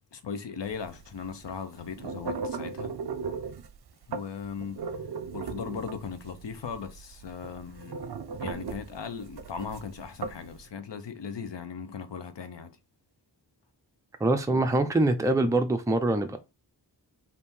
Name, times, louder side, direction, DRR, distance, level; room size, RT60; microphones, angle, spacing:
voice 1, 0.1-2.9 4.1-4.8 5.3-7.9 8.4-12.7, left 6 dB, 85° left, 0.7 m, -38 dB
sound 1, 0.7-10.6, right 5 dB, 65° right, 0.6 m, -37 dB
voice 2, 14.2-16.4, right 2 dB, 10° right, 0.5 m, -24 dB
3.5 x 2.8 x 4.3 m
wide cardioid pair, 65°, 41 cm